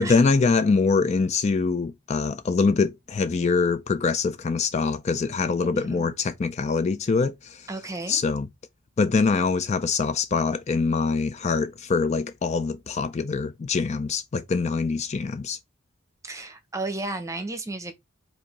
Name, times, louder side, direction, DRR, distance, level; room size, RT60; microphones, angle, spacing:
voice 1, 0.0-7.6 8.1-8.5 9.0-15.6, left 4 dB, 35° left, 0.3 m, -24 dB
voice 2, 5.6-6.1 7.7-8.2 16.2-17.9, right 2 dB, 15° right, 0.7 m, -33 dB
4.8 x 2.6 x 4.0 m
head